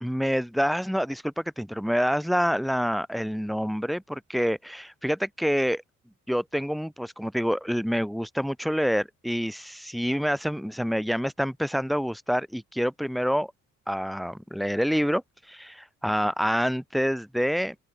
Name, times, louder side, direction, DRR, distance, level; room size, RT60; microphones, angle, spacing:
voice 1, 0.0-5.8 6.3-13.5 13.9-15.2 15.5-17.7, equal, ahead, 1.5 m, -27 dB
open air
cardioid pair, 90°, 30 cm